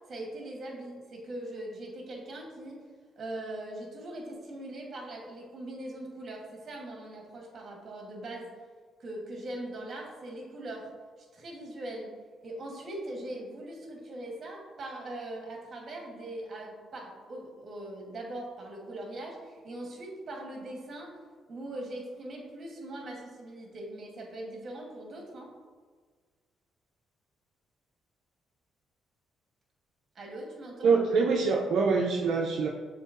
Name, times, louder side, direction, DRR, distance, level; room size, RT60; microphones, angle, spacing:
voice 1, 0.1-2.8 3.2-8.5 9.0-10.9 11.2-12.1 12.4-21.2 21.5-25.5 30.1-31.0, right 1 dB, 50° right, 0 dB, 1.2 m, -41 dB
voice 2, 30.8-32.7, right 4 dB, 70° right, -1 dB, 0.4 m, -25 dB
6.6 x 2.8 x 2.5 m, 1.5 s
cardioid pair, 90°, 0 cm